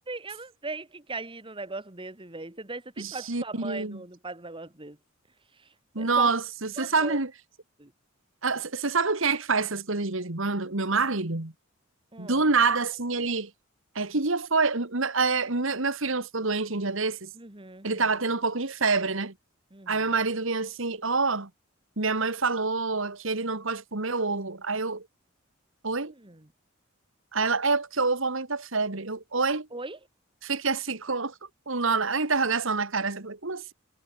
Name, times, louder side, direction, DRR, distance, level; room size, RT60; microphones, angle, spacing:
voice 1, 0.1-5.0 5.5-6.3 6.8-7.2 7.8-7.9 12.1-12.4 17.4-18.0 19.7-20.1 26.1-26.4 29.7-30.0, right 3 dB, 25° right, 2.1 m, -39 dB
voice 2, 3.0-4.0 6.0-7.3 8.4-11.5 12.2-13.5 14.0-17.3 17.8-19.3 19.9-21.5 22.0-25.1 25.8-26.1 27.3-29.7 30.4-31.3 31.7-33.7, right 4 dB, 65° right, 2.0 m, -27 dB
head